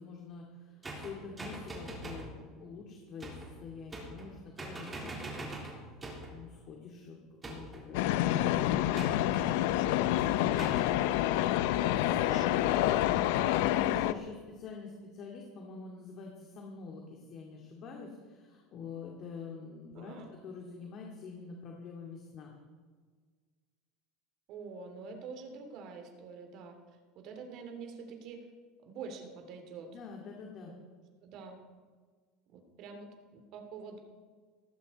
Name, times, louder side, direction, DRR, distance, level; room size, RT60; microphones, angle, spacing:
voice 1, 0.0-5.5 6.3-8.3 9.5-10.7 11.8-22.5 29.9-30.7, left 5 dB, 40° left, 0 dB, 2.3 m, -46 dB
sound 1, 0.8-2.3 3.2-3.5 3.9-4.3 4.6-6.4 7.4-7.9 8.9-9.5 10.6-10.9, right 2 dB, 15° right, 3.7 m, -43 dB
voice 2, 4.9-5.4 10.1-10.7 11.9-12.7 19.9-20.3 24.5-26.8 27.1-28.5 28.8-30.0 31.2-31.6 32.5-34.0, right 4 dB, 50° right, 5 dB, 2.7 m, -46 dB
sound 2, 7.9-14.1, left 13 dB, 75° left, 0.6 m, -28 dB
18.0 x 15.5 x 4.2 m, 1.5 s
supercardioid pair, 145°, 0 cm